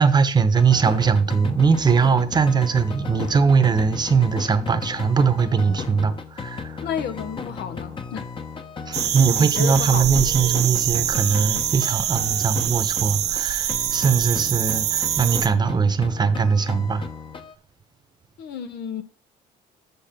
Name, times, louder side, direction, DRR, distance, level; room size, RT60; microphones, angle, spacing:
voice 1, 0.0-6.8 8.9-17.1, right 5 dB, 25° right, 1.0 m, -20 dB
sound 1, 0.5-13.4 13.7-17.5, left 5 dB, 30° left, 1.0 m, -35 dB
voice 2, 6.8-8.3 8.9-9.0 9.3-10.3 18.4-19.0, left 8 dB, 75° left, 1.1 m, -32 dB
sound 2, 8.9-15.5, right 11 dB, 75° right, 1.1 m, -24 dB
6.9 x 6.4 x 5.9 m
cardioid pair, 110°, 17 cm